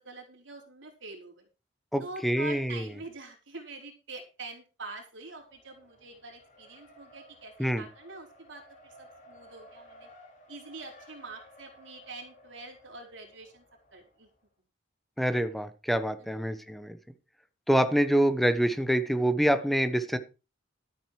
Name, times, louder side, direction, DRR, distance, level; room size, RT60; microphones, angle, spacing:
voice 1, 0.0-1.5 2.0-10.1 10.5-13.6 13.9-14.3 16.2-16.4, right 3 dB, 70° right, 1 dB, 4.7 m, -45 dB
voice 2, 1.9-2.9 7.6-7.8 15.2-17.0 17.7-20.2, right 1 dB, ahead, 10 dB, 1.0 m, -26 dB
Race car auto racing, 5.3-14.4, equal, 40° left, 5.3 m, -56 dB
13.0 x 9.2 x 4.8 m, 0.31 s
head